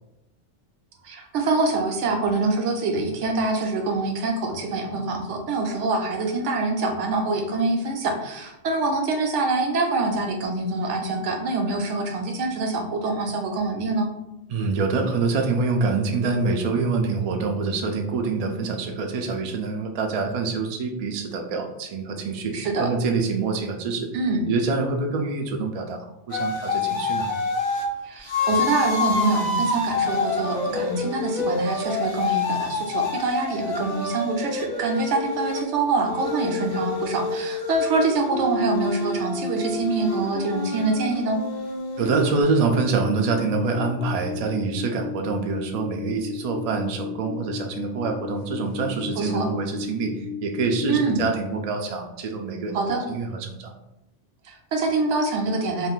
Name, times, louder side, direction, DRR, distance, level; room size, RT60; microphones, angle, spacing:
voice 1, 1.0-14.1 22.5-22.9 24.1-24.5 28.0-41.4 49.2-49.5 50.9-51.2 52.7-53.0 54.4-55.9, right 3 dB, 90° right, 3 dB, 0.9 m, -25 dB
voice 2, 14.5-24.1 24.5-27.3 42.0-52.8 53.1-53.7, right 4 dB, 70° right, 3 dB, 0.3 m, -26 dB
sound 1, 26.3-27.9 28.3-35.6 36.1-42.4, left 3 dB, 40° left, 0.5 m, -27 dB
sound 2, 42.7-50.9, left 8 dB, 60° left, 0.8 m, -35 dB
2.5 x 2.4 x 3.6 m, 0.88 s
omnidirectional pair, 1.2 m